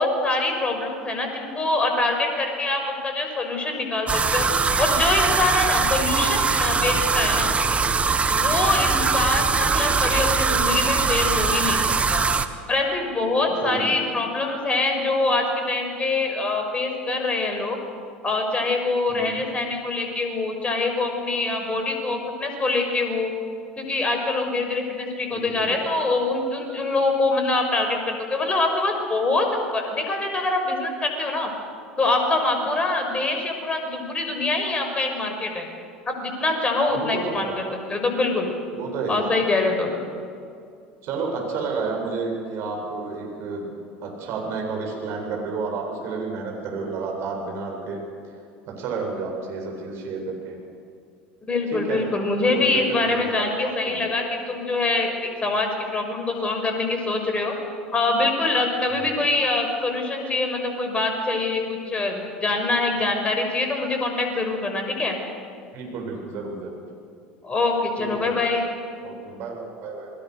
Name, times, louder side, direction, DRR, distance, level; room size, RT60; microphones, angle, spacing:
voice 1, 0.0-4.5 4.8-7.5 8.3-11.8 12.1-12.3 12.7-17.8 18.2-23.3 23.8-31.5 32.0-35.7 36.1-38.5 39.1-39.9 51.5-57.5 57.9-65.2 67.4-68.7, left 2 dB, 20° left, 3 dB, 6.2 m, -24 dB
sound 1, 4.1-12.5, right 5 dB, 25° right, 1.5 m, -22 dB
voice 2, 13.4-14.0 19.1-19.4 25.3-25.8 36.9-37.6 38.7-39.3 41.0-43.7 44.0-48.0 48.7-50.6 51.7-52.0 52.4-54.0 59.0-59.1 65.7-66.8 68.0-68.3 69.0-70.1, right 4 dB, 50° right, 0 dB, 8.0 m, -31 dB
28.5 x 21.0 x 6.9 m, 2.4 s
figure-of-eight pair, 75°, 5 cm